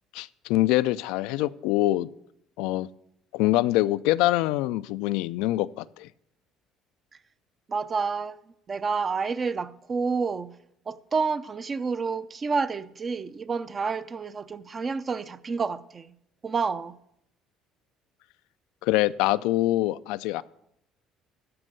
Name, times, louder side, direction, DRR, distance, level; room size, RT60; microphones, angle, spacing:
voice 1, 0.1-2.1 2.6-2.9 3.3-6.1 18.8-20.4, left 16 dB, 85° left, 0.4 m, -24 dB
voice 2, 7.7-8.4 8.7-10.5 10.9-16.1 16.4-17.0, right 5 dB, 35° right, 0.6 m, -29 dB
13.5 x 5.3 x 8.0 m
cardioid pair, 100°, 0 cm